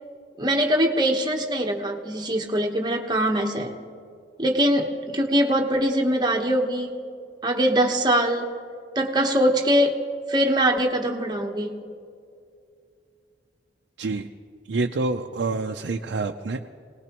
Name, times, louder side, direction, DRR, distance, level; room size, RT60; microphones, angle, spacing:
voice 1, 0.4-3.7 4.4-6.9 7.4-8.5 8.9-10.0 10.3-11.8, right 1 dB, 25° right, 2 dB, 1.1 m, -22 dB
voice 2, 14.0-14.3 14.7-16.7, right 3 dB, 85° right, 4 dB, 0.5 m, -27 dB
24.5 x 19.0 x 3.0 m, 2.4 s
head